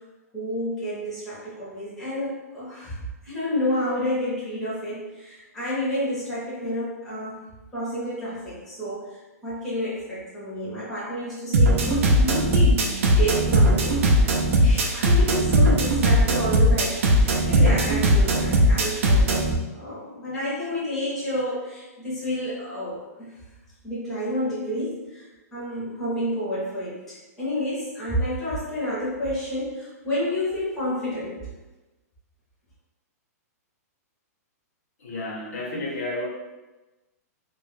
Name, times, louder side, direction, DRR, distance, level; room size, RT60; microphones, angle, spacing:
voice 1, 0.3-7.4 7.7-23.3 23.8-31.4, equal, 5° left, -11 dB, 0.6 m, -30 dB
sound 1, 11.5-19.5, right 1 dB, 50° right, 0.4 m, -19 dB
voice 2, 35.0-36.3, left 2 dB, 60° left, -3 dB, 0.7 m, -31 dB
2.1 x 2.0 x 3.1 m, 1.1 s
hypercardioid pair, 175°, 9 cm